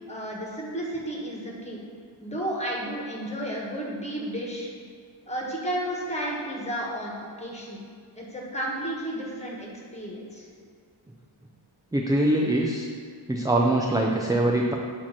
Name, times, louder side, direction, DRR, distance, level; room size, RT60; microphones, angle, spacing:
voice 1, 0.1-1.8 2.2-4.7 5.3-7.8 8.1-10.5, right 1 dB, 15° left, -4 dB, 1.5 m, -32 dB
voice 2, 11.9-12.9 13.3-14.7, right 1 dB, 10° right, 0 dB, 0.3 m, -23 dB
8.6 x 2.9 x 5.9 m, 2.2 s
wide cardioid pair, 125°, 48 cm